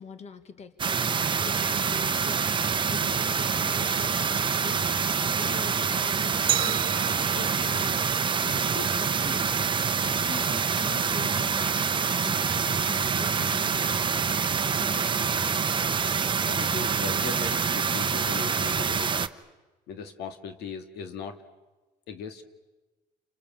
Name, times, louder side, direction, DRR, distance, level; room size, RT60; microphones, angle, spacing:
voice 1, 0.0-8.0 8.4-9.5 10.0-11.9 12.2-15.3, left 5 dB, 40° left, 10 dB, 1.8 m, -44 dB
sound 1, 0.8-19.3, right 6 dB, 30° right, 0.9 m, -26 dB
Glass, 6.5-9.2, right 14 dB, 65° right, 1.3 m, -33 dB
voice 2, 16.4-19.3 19.9-21.4 22.1-22.4, left 6 dB, 80° left, 8 dB, 2.1 m, -38 dB
30.0 x 25.0 x 7.5 m, 1.2 s
cardioid pair, 110°, 17 cm